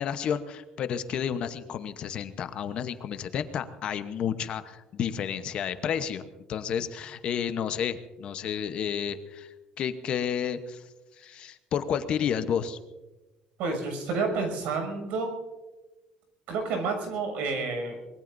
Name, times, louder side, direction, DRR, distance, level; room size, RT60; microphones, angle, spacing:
voice 1, 0.0-10.8 11.2-12.8, left 8 dB, 45° left, 10 dB, 0.9 m, -31 dB
voice 2, 13.6-15.4 16.5-18.0, right 4 dB, 80° right, 4 dB, 6.5 m, -29 dB
24.5 x 21.0 x 2.7 m, 1.1 s
cardioid pair, 160°, 2 cm